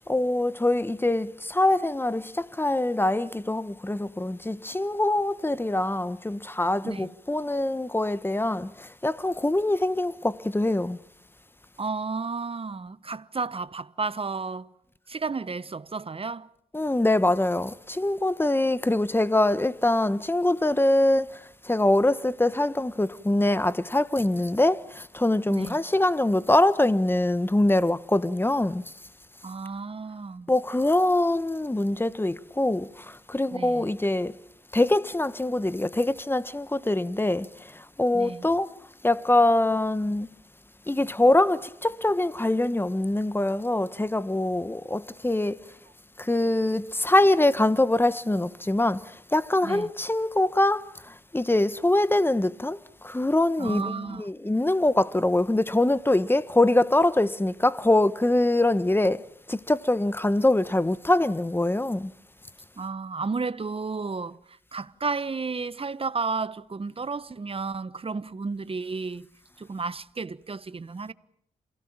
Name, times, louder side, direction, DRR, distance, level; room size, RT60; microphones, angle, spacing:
voice 1, 0.1-11.0 16.7-28.9 30.5-34.4 34.7-38.7 39.0-40.3 40.9-45.6 46.2-59.2 59.5-62.1, left 1 dB, 15° left, 1.3 m, -24 dB
voice 2, 11.8-14.7 15.1-16.5 25.5-25.8 29.4-30.5 33.5-33.9 38.1-38.5 49.6-49.9 53.6-54.3 62.8-69.3 69.6-71.1, right 4 dB, 35° right, 1.2 m, -32 dB
28.0 x 17.5 x 8.9 m
cardioid pair, 55°, 16 cm